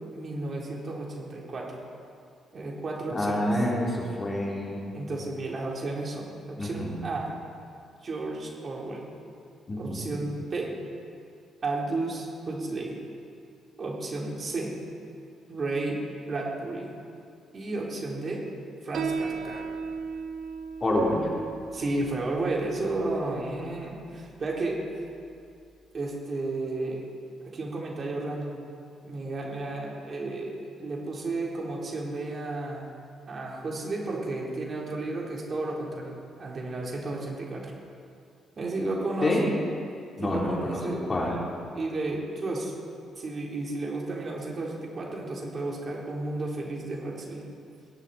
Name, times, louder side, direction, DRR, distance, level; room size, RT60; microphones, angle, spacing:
voice 1, 0.1-1.8 2.5-3.4 4.9-7.3 8.0-9.1 9.8-10.7 11.6-12.9 13.8-14.7 15.5-16.9 17.5-18.4 18.8-19.6 21.7-24.8 25.9-27.1 27.5-28.6 29.0-32.9 33.3-37.7 38.6-39.5 40.2-41.0 41.7-42.7 43.2-47.4, right 2 dB, 45° right, -3 dB, 3.4 m, -32 dB
voice 2, 3.1-4.9 6.6-7.0 9.7-10.1 20.8-21.3 39.2-39.5 40.2-41.4, left 1 dB, 30° left, -3 dB, 3.1 m, -27 dB
Piano, 18.9-26.0, right 5 dB, 70° right, 1.2 m, -38 dB
21.0 x 11.0 x 4.2 m, 2.4 s
cardioid pair, 90°, 0 cm